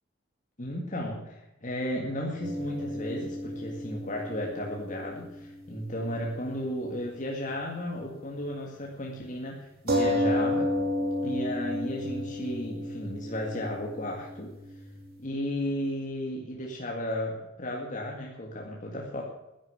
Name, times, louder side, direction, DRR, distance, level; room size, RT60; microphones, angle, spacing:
voice 1, 0.6-10.7 11.2-14.5 15.2-19.2, left 1 dB, 40° left, -1 dB, 2.0 m, -34 dB
sound 1, 2.4-6.3 6.5-6.7 9.9-15.1, equal, 55° right, 2.8 m, -32 dB
11.0 x 9.9 x 8.3 m, 0.93 s
head